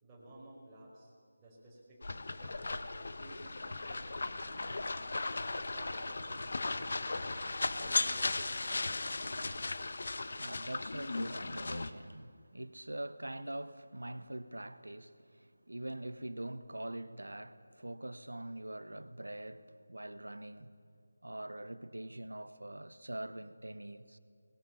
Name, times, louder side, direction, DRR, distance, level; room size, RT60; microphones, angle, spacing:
voice 1, 0.0-4.8 5.5-7.1 7.7-9.1, right 1 dB, 10° right, 5.2 m, -55 dB
sound 1, 2.0-11.9, left 3 dB, 55° left, 1.1 m, -37 dB
sound 2, 3.1-9.7, equal, 75° left, 6.0 m, -53 dB
voice 2, 10.3-20.7 21.2-24.2, right 1 dB, 75° right, 1.3 m, -44 dB
23.5 x 20.5 x 7.2 m
figure-of-eight pair, 160°, 0 cm